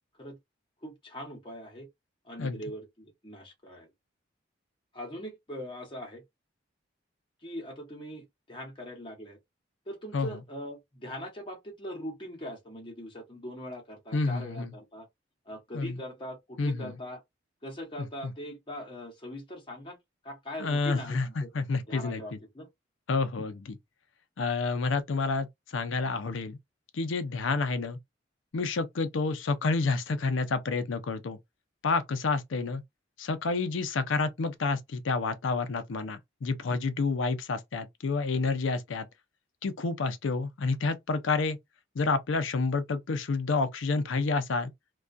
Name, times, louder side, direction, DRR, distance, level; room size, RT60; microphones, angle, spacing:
voice 1, 0.8-1.9 2.2-3.9 4.9-6.2 7.4-9.4 9.9-15.1 15.5-17.2 17.6-20.0 20.2-21.5 21.9-22.7, equal, 25° left, 0.9 m, -41 dB
voice 2, 14.1-14.7 15.7-16.0 16.6-16.9 18.2-18.3 20.6-22.4 23.1-23.8 24.4-25.5 25.7-26.6 26.9-28.0 28.5-31.4 31.8-32.8 33.2-39.1 39.6-41.6 41.9-44.7, left 3 dB, 85° left, 0.5 m, -29 dB
2.3 x 2.2 x 2.5 m
head